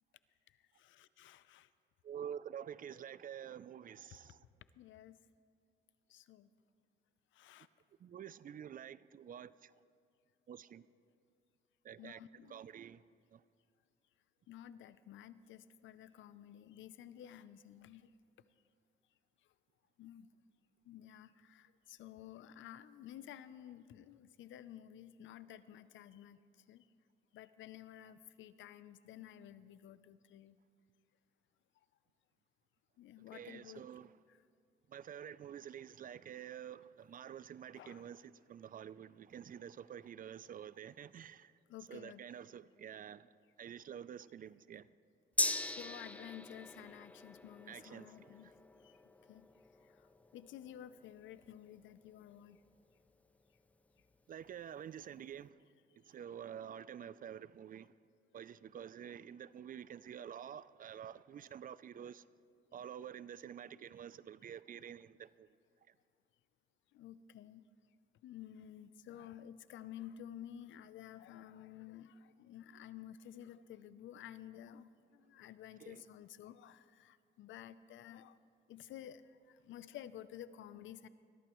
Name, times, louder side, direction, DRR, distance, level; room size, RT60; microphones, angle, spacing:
voice 1, 0.8-1.7 4.8-5.2 6.1-6.5 7.3-7.7 12.0-12.6 14.5-18.1 20.0-20.3 20.9-26.4 26.7-26.8 27.3-30.6 33.0-33.8 34.3-34.4 37.7-38.1 41.7-42.2 45.6-48.5 48.8-48.9 49.3-49.5 50.3-52.6 66.9-67.7 68.2-78.4 78.7-81.1, left 11 dB, 75° left, 0.6 m, -52 dB
voice 2, 2.0-4.4 8.0-9.7 10.5-10.9 11.8-12.2 12.5-13.0 13.3-13.4 33.3-34.1 34.9-41.5 41.9-43.3 43.6-44.9 47.7-48.5 54.3-55.6 56.1-57.9 58.3-62.2 62.7-65.5 75.8-76.0, right 9 dB, 45° right, 0.4 m, -48 dB
Gong, 45.4-53.1 53.5-53.6, left 1 dB, 5° left, 0.5 m, -42 dB
22.0 x 15.0 x 3.1 m
cardioid pair, 90°, 20 cm